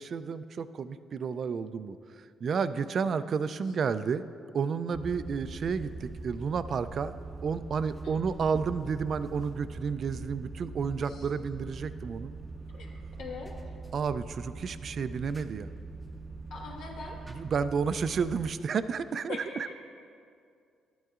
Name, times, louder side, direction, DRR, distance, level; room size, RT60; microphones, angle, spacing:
voice 1, 0.0-4.3 4.5-12.3 13.9-15.7 17.3-19.7, right 6 dB, 55° right, 13 dB, 0.3 m, -31 dB
sound 1, 4.9-18.5, right 3 dB, 10° right, 0.6 m, -42 dB
voice 2, 13.2-13.5 16.5-17.2 19.3-19.7, left 4 dB, 85° left, -2 dB, 1.5 m, -41 dB
12.5 x 9.2 x 2.4 m, 2.4 s
cardioid pair, 90°, 0 cm